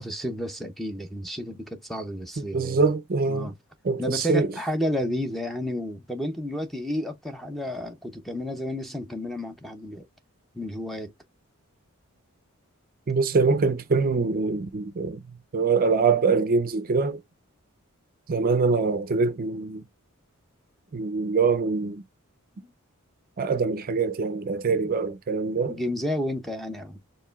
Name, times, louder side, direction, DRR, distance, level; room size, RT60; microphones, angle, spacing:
voice 1, 0.0-2.8 3.2-3.6 4.0-10.1 10.5-11.1 22.6-22.7 24.7-24.8 25.7-27.0, equal, ahead, 0.7 m, -31 dB
voice 2, 2.5-3.5 3.8-4.5 13.1-15.2 15.5-17.2 18.3-19.8 20.9-22.0 23.4-25.8, right 4 dB, 40° right, 0.5 m, -24 dB
4.7 x 3.1 x 2.3 m
head